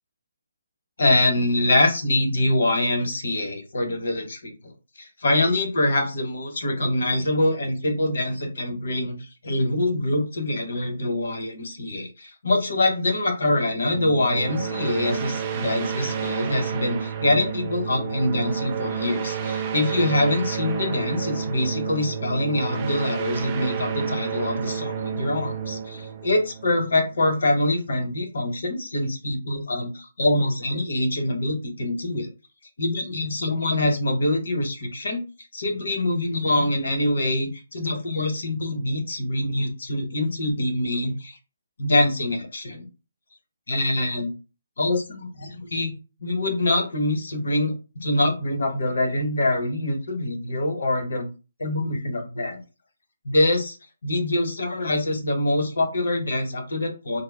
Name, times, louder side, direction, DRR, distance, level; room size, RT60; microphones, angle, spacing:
voice 1, 1.0-4.7 5.0-9.2 9.4-32.3 32.8-35.2 35.5-41.4 41.8-42.9 43.7-44.3 44.8-45.9 46.2-51.3 51.6-52.6 53.2-53.8 54.0-57.2, left 1 dB, 70° left, 5 dB, 0.9 m, -24 dB
sound 1, 13.9-27.2, right 7 dB, 20° right, 0.4 m, -30 dB
3.4 x 2.1 x 2.2 m, 0.31 s
hypercardioid pair, 165°, 0 cm